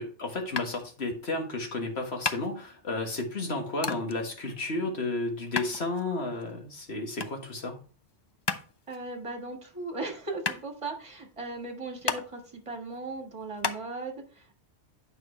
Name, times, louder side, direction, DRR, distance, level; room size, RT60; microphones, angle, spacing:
voice 1, 0.0-7.8, left 2 dB, 60° left, 3 dB, 1.9 m, -32 dB
sound 1, 0.6-13.8, left 4 dB, 40° left, 0.3 m, -36 dB
voice 2, 8.9-14.6, right 3 dB, 25° right, 2 dB, 1.6 m, -38 dB
8.9 x 5.9 x 3.2 m, 0.38 s
omnidirectional pair, 1.3 m